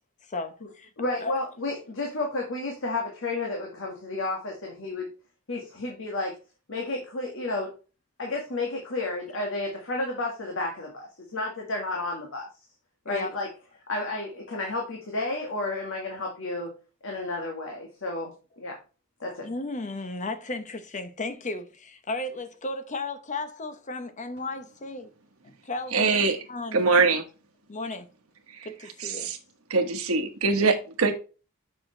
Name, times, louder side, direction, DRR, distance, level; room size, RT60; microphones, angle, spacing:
voice 1, 0.3-0.9 1.2-1.3 13.1-13.3 19.4-25.1 25.4-26.2 26.5-26.8 27.7-28.1 28.6-29.3, left 2 dB, 35° left, 0.9 m, -34 dB
voice 2, 1.0-5.1 5.5-6.4 6.7-7.7 8.2-12.5 13.1-13.5 13.9-16.7 17.0-18.8 19.2-19.5, left 2 dB, 65° left, 1.8 m, -31 dB
voice 3, 25.9-26.4 26.7-27.2 28.5-28.7 29.0-29.4 29.7-31.1, right 4 dB, 75° right, 1.3 m, -23 dB
7.5 x 5.9 x 3.3 m
head